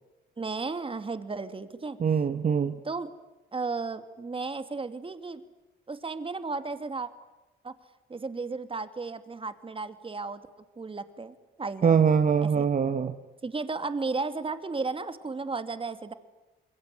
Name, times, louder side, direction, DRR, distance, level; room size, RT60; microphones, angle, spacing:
voice 1, 0.4-2.0 2.8-3.1 3.5-5.4 5.9-7.1 7.6-7.7 8.1-10.4 10.8-12.0 12.4-12.7 13.4-16.1, right 4 dB, 25° right, 10 dB, 2.6 m, -34 dB
voice 2, 2.0-2.8 11.8-13.1, right 7 dB, 40° right, 9 dB, 1.6 m, -23 dB
27.5 x 22.5 x 9.7 m, 1.1 s
cardioid pair, 90°, 20 cm